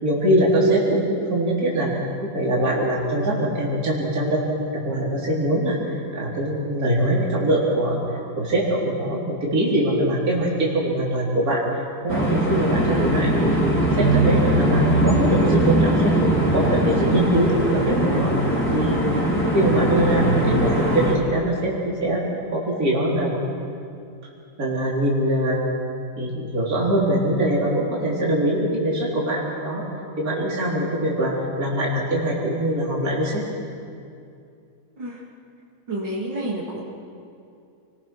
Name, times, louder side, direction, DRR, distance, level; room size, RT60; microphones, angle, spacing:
voice 1, 0.0-1.9 2.3-4.4 4.7-5.8 6.1-8.0 8.4-11.6 12.0-13.6 13.9-16.1 16.5-18.3 18.7-19.0 19.3-22.2 22.5-23.4 24.6-25.6 26.2-29.8 30.2-33.4, right 1 dB, 45° right, -4 dB, 4.4 m, -22 dB
sound 1, 12.1-21.1, right 1 dB, 5° left, 4.6 m, -20 dB
voice 2, 35.9-36.8, right 1 dB, 65° right, -3 dB, 3.7 m, -29 dB
29.5 x 21.0 x 6.1 m, 2.5 s
omnidirectional pair, 2.1 m